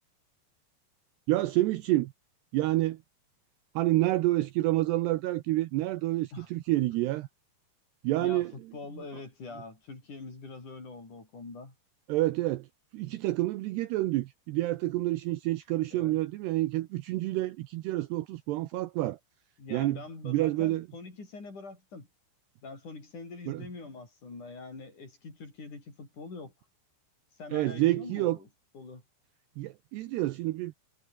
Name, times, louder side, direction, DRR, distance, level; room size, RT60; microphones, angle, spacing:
voice 1, 1.3-2.1 2.5-3.0 3.8-7.3 8.0-8.5 12.1-12.7 12.9-19.2 19.7-20.9 23.5-23.7 27.5-28.4 29.6-30.7, right 17 dB, 75° right, 2.6 m, -28 dB
voice 2, 8.2-11.7 15.9-16.2 19.6-22.1 22.6-26.5 27.4-28.5 28.7-29.0, left 3 dB, 40° left, 8.3 m, -44 dB
omnidirectional pair, 5.5 m